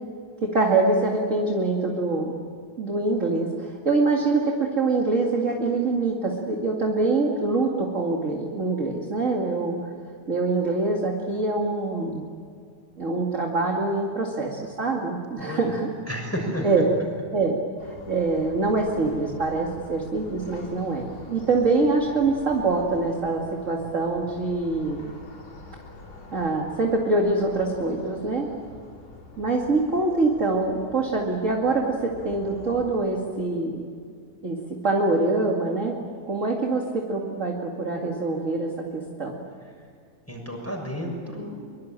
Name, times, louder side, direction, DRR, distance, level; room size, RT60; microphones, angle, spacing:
voice 1, 0.4-2.3 2.8-9.8 10.3-12.3 13.0-15.9 16.6-16.9 17.3-25.1 26.3-28.5 29.4-33.8 34.4-34.6 34.8-36.0 36.3-39.3, right 3 dB, 25° right, 0 dB, 1.8 m, -24 dB
voice 2, 16.1-16.7 40.3-41.6, equal, 5° left, 1 dB, 6.2 m, -31 dB
sound 1, 17.8-33.1, left 3 dB, 65° left, 6.1 m, -45 dB
24.0 x 24.0 x 8.9 m, 2.2 s
omnidirectional pair, 4.1 m